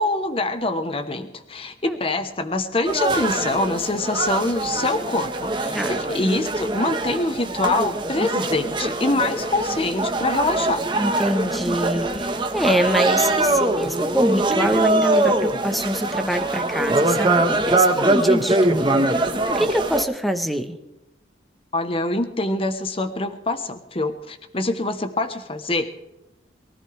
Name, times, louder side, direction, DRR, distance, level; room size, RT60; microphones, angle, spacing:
voice 1, 0.0-10.8 21.7-25.9, left 2 dB, 30° left, 9 dB, 1.1 m, -25 dB
sound 1, 2.8-20.0, right 2 dB, 25° right, 1.3 m, -23 dB
voice 2, 10.9-20.7, equal, ahead, 7 dB, 1.2 m, -25 dB
23.0 x 14.0 x 3.4 m, 0.91 s
head